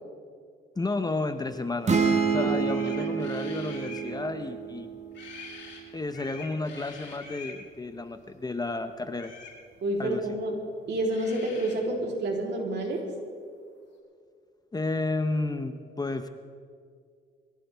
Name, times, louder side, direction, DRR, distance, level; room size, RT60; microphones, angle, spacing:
voice 1, 0.8-1.9 2.3-4.9 5.9-9.3 10.0-10.4 14.7-16.3, left 2 dB, 20° left, 9 dB, 0.9 m, -32 dB
sound 1, 1.9-5.6, right 5 dB, 35° right, 1.7 m, -28 dB
sound 2, 2.6-4.1 5.1-5.8 6.1-7.6 9.1-9.6 10.8-10.9 11.1-11.8, left 4 dB, 65° left, 5.5 m, -45 dB
voice 2, 9.8-10.5 10.9-13.0, right 1 dB, 60° right, -1 dB, 3.6 m, -29 dB
23.0 x 16.0 x 3.5 m, 2.1 s
cardioid pair, 90°, 20 cm